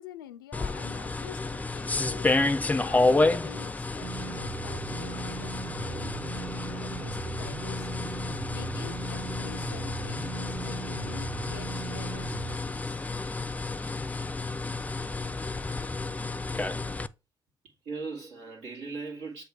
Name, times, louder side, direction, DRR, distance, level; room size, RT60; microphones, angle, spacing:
voice 1, 0.0-13.0, left 11 dB, 90° left, 0.4 m, -47 dB
sound 1, 0.5-17.1, left 3 dB, 15° left, 0.5 m, -30 dB
sound 2, 4.0-12.6, right 11 dB, 50° right, 0.5 m, -40 dB
voice 2, 17.6-19.4, right 4 dB, 70° right, 2.0 m, -38 dB
7.7 x 2.9 x 4.7 m
hypercardioid pair, 45°, 11 cm